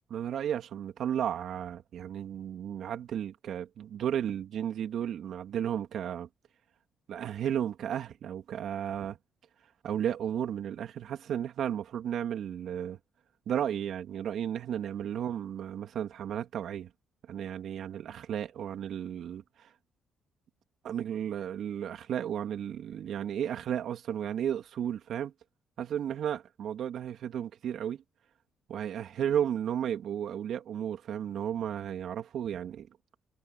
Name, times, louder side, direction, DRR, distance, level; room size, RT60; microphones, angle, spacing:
voice 1, 0.1-6.3 7.1-9.2 9.8-13.0 13.5-16.9 17.3-19.7 20.8-25.3 25.8-28.0 28.7-32.9, right 9 dB, 70° right, 2.9 m, -33 dB
cardioid pair, 90°, 0 cm